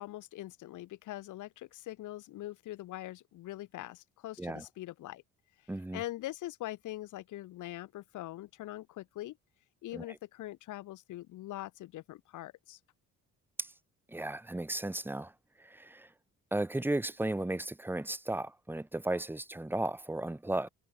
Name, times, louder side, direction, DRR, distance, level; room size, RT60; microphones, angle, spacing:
voice 1, 0.0-5.2 5.9-9.4 9.8-12.8, left 15 dB, 85° left, 2.1 m, -43 dB
voice 2, 5.7-6.0 9.9-10.0 13.6-13.7 14.1-15.3 15.6-16.1 16.5-20.7, right 2 dB, 5° right, 1.2 m, -35 dB
cardioid pair, 100°, 30 cm